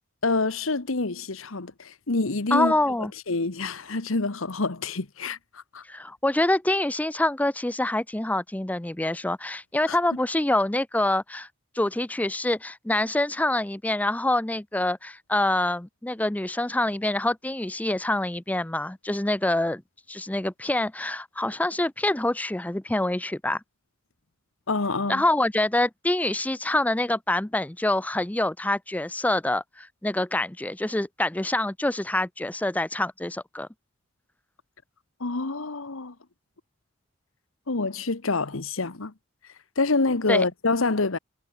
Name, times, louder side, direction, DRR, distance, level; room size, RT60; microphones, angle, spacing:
voice 1, 0.2-2.7 3.3-5.8 9.9-10.0 24.7-25.2 35.2-36.1 37.7-39.1 39.8-41.2, left 3 dB, 75° left, 1.3 m, -27 dB
voice 2, 2.5-3.1 5.9-11.5 11.8-19.8 20.1-23.6 25.1-33.7 40.3-40.5, left 1 dB, 5° left, 0.5 m, -26 dB
head